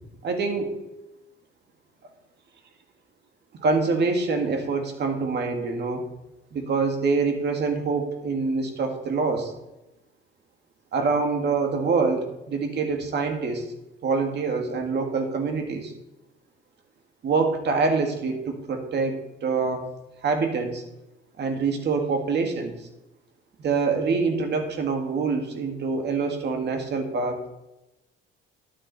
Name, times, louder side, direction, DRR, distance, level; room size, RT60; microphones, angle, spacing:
voice 1, 0.2-0.7 3.6-6.0 6.5-9.5 10.9-13.7 14.0-15.9 17.2-19.9 20.2-20.8 21.4-22.9 23.6-27.5, right 4 dB, 55° right, 4 dB, 2.0 m, -25 dB
12.0 x 7.6 x 4.1 m, 0.96 s
cardioid pair, 105°, 21 cm